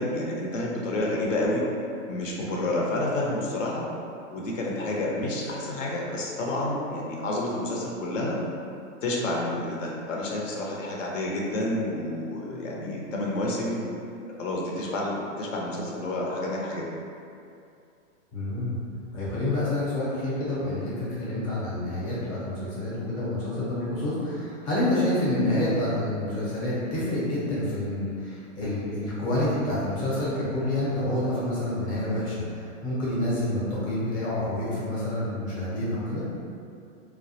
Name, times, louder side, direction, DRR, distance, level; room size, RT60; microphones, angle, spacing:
voice 1, 0.0-1.6 2.1-3.9 4.3-8.4 9.0-13.9 14.4-16.9, left 1 dB, 70° left, -3 dB, 0.7 m, -29 dB
voice 2, 18.3-18.8 19.1-36.2, left 1 dB, 20° left, -9 dB, 0.6 m, -28 dB
2.2 x 2.1 x 2.7 m, 2.5 s
hypercardioid pair, 145°, 39 cm